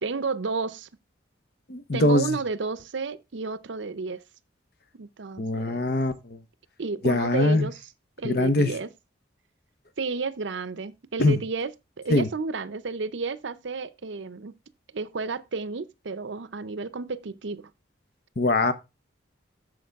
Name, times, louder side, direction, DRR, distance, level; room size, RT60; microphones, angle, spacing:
voice 1, 0.0-0.9 1.9-4.2 5.0-5.9 6.8-7.8 8.2-8.9 10.0-14.5 14.9-17.7, right 4 dB, 75° right, 0.6 m, -32 dB
voice 2, 1.7-2.4 5.4-6.4 7.0-7.7 8.2-8.7 11.2-11.4 12.1-12.3 18.4-18.7, left 2 dB, 55° left, 1.0 m, -22 dB
8.6 x 6.6 x 3.5 m
head